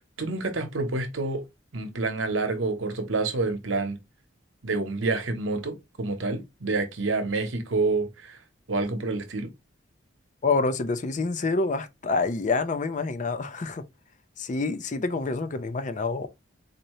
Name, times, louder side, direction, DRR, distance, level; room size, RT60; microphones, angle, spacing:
voice 1, 0.2-1.4 1.7-4.0 4.6-8.4 8.7-9.5, right 3 dB, 85° right, 0.9 m, -28 dB
voice 2, 10.4-13.8 14.4-16.3, left 3 dB, 40° left, 0.5 m, -27 dB
4.0 x 2.7 x 3.1 m
head